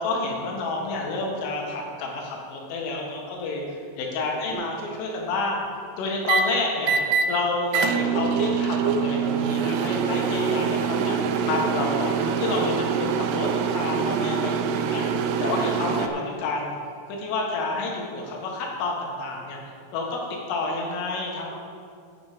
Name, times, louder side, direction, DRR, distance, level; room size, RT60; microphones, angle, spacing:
voice 1, 0.0-3.6 4.0-5.6 6.0-7.0 7.3-11.2 11.5-16.8 17.1-19.6 19.9-20.2 20.5-21.6, left 3 dB, 80° left, -1 dB, 4.0 m, -29 dB
sound 1, 4.5-4.9 6.3-6.4 6.8-7.3 7.7-16.1, right 6 dB, 80° right, 3.1 m, -25 dB
11.0 x 8.6 x 5.0 m, 2.3 s
omnidirectional pair, 5.8 m